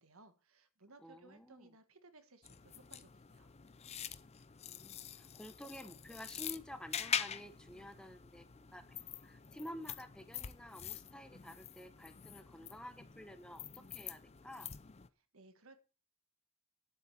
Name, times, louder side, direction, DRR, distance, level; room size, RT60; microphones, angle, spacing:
voice 1, 0.0-3.5 15.1-15.8, right 2 dB, 70° right, 9 dB, 1.5 m, -61 dB
voice 2, 1.0-1.7 4.7-8.9 9.2-14.7, left 1 dB, 5° left, 9 dB, 0.9 m, -51 dB
sound 1, 2.4-15.1, left 8 dB, 30° left, 0.5 m, -45 dB
10.5 x 7.7 x 5.7 m, 0.36 s
head